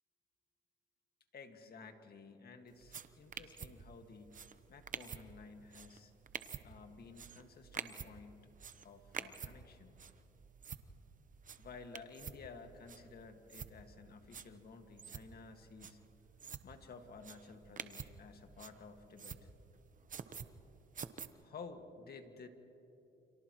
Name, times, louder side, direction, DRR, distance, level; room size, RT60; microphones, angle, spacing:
voice 1, 1.3-4.4 4.7-6.1 6.6-8.5 8.8-10.0 11.6-16.0 16.6-19.4 21.4-22.5, left 4 dB, 50° left, 5 dB, 2.0 m, -53 dB
sound 1, 2.7-21.3, right 6 dB, 40° right, 1.0 m, -50 dB
30.0 x 28.0 x 3.1 m, 3.0 s
cardioid pair, 90°, 20 cm